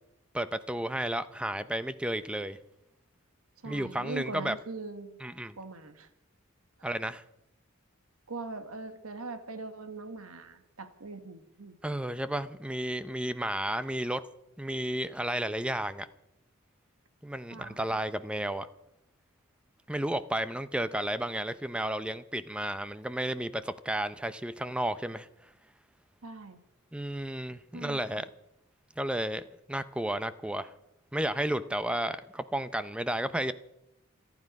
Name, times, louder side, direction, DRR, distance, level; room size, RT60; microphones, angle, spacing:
voice 1, 0.3-2.6 3.6-4.5 5.2-5.6 6.8-7.2 11.8-14.2 14.6-16.1 17.2-18.7 19.9-25.3 26.9-28.3 29.0-29.4 29.7-30.7 31.1-33.5, right 1 dB, 5° right, 13 dB, 0.5 m, -32 dB
voice 2, 3.6-5.2 5.6-6.1 8.3-11.8 17.5-17.8 26.2-26.6 27.7-28.2, right 3 dB, 90° right, 9 dB, 1.5 m, -41 dB
27.0 x 9.8 x 5.2 m, 0.84 s
head